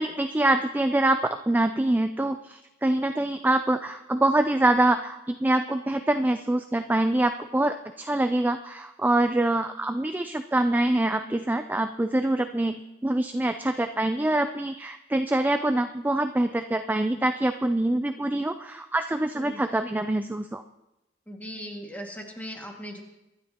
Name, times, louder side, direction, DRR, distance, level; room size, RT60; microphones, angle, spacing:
voice 1, 0.0-20.6, right 1 dB, 10° right, 8 dB, 0.4 m, -25 dB
voice 2, 21.3-23.0, equal, 10° left, 1 dB, 2.0 m, -38 dB
24.5 x 11.5 x 2.9 m, 0.96 s
head